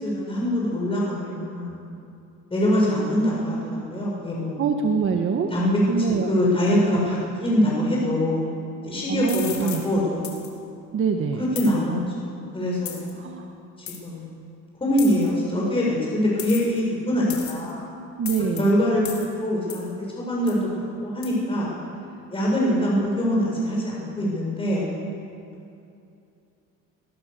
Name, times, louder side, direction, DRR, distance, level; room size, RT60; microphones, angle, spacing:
voice 1, 0.0-1.8 2.5-4.6 5.5-5.8 6.1-8.5 8.8-10.2 11.4-13.2 13.8-14.3 14.8-17.9 18.6-20.7 21.0-21.7 22.3-24.9, equal, 20° left, -4 dB, 7.2 m, -24 dB
voice 2, 4.6-5.5 5.9-6.3 9.1-10.0 10.9-11.5 13.2-13.5 18.2-18.7, right 5 dB, 45° right, 4 dB, 1.5 m, -25 dB
sound 1, 9.3-9.8 10.2-10.5 11.5-11.7 12.8-13.1 13.9-14.0 15.0-15.3 16.4-16.8 17.3-17.7 18.2-18.6 19.0-19.3 19.7-19.9 20.5-20.6 21.2-21.3, left 9 dB, 70° left, 4.5 m, -35 dB
28.5 x 21.0 x 6.9 m, 2.6 s
cardioid pair, 130°, 30 cm